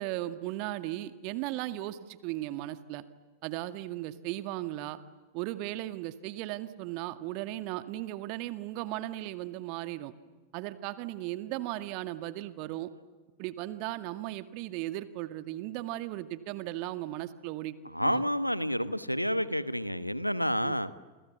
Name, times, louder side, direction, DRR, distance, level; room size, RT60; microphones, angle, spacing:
voice 1, 0.0-3.0 3.4-5.0 5.3-10.1 10.5-12.9 13.4-18.2 20.6-20.8, right 15 dB, 45° right, 10 dB, 1.8 m, -36 dB
voice 2, 17.9-20.9, equal, 90° left, 15 dB, 1.1 m, -29 dB
28.0 x 27.0 x 7.3 m, 1.3 s
figure-of-eight pair, 90°, 0 cm